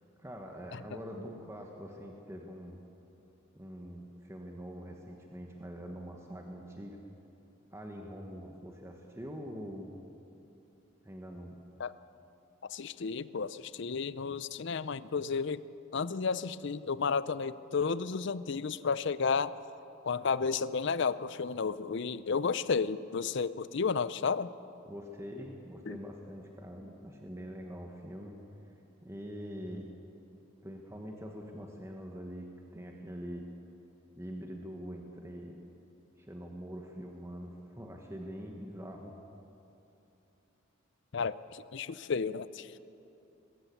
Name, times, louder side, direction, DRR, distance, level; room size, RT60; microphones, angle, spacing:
voice 1, 0.2-2.8 3.5-7.0 7.7-9.9 11.0-11.6 14.3-14.4 24.8-28.4 29.0-29.9 30.6-33.4 34.1-35.5 36.2-39.1, equal, 15° right, 1 dB, 1.3 m, -44 dB
voice 2, 12.6-15.6 15.9-19.5 20.0-24.5 25.9-26.0 41.1-42.8, left 5 dB, 60° left, 16 dB, 0.5 m, -32 dB
20.5 x 15.0 x 8.5 m, 2.9 s
head